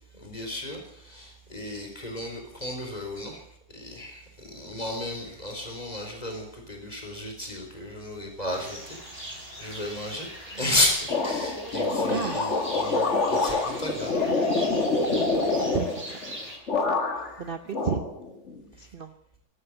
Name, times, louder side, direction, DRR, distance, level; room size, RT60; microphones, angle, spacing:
voice 1, 0.1-3.4 3.7-14.3 14.6-14.8, left 1 dB, 20° left, 2 dB, 4.1 m, -33 dB
sound 1, 8.5-16.6, right 1 dB, 20° right, 4.2 m, -41 dB
sound 2, 11.1-16.4 16.7-17.4 17.7-18.6, left 3 dB, 40° left, 2.1 m, -26 dB
voice 2, 12.1-12.5 15.6-16.2 17.4-18.0 18.8-19.1, right 6 dB, 55° right, 8 dB, 0.6 m, -32 dB
13.0 x 12.0 x 8.9 m, 0.74 s
omnidirectional pair, 2.0 m